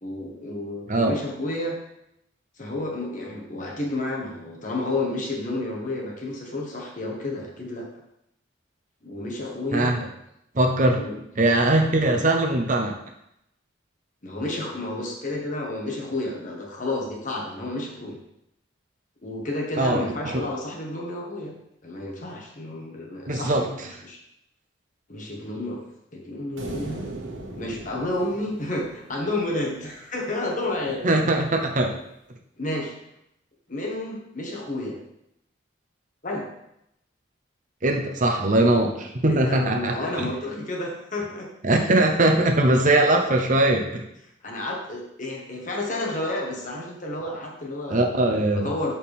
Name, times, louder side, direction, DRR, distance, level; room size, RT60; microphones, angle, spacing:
voice 1, 0.0-1.8 2.6-7.9 9.0-10.0 11.0-11.2 12.0-12.3 14.2-18.2 19.2-21.5 21.8-23.7 24.0-24.2 25.1-25.8 26.1-27.0 27.6-31.0 32.6-32.9 33.7-35.0 36.2-36.4 39.3-41.5 44.4-48.0 48.5-48.9, left 2 dB, 40° left, -1 dB, 1.5 m, -31 dB
voice 2, 9.7-10.0 10.5-11.0 11.4-12.9 19.8-20.1 23.3-23.9 31.0-31.9 37.8-40.3 41.6-44.0 47.9-48.7, right 2 dB, 40° right, 2 dB, 0.8 m, -21 dB
sound 1, 26.6-29.9, right 2 dB, 75° right, 1.3 m, -38 dB
11.5 x 4.5 x 3.6 m, 0.81 s
head